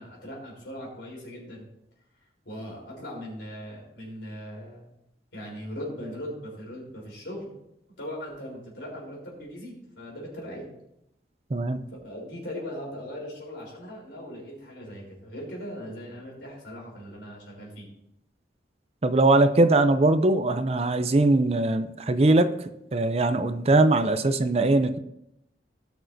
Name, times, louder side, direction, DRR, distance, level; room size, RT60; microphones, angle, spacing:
voice 1, 0.0-1.6 2.5-4.8 5.3-7.6 8.0-10.7 11.9-17.9, equal, 80° left, -2 dB, 3.8 m, -39 dB
voice 2, 19.0-22.5 22.9-25.0, right 2 dB, 35° right, 10 dB, 0.5 m, -21 dB
17.5 x 6.3 x 2.7 m, 0.82 s
head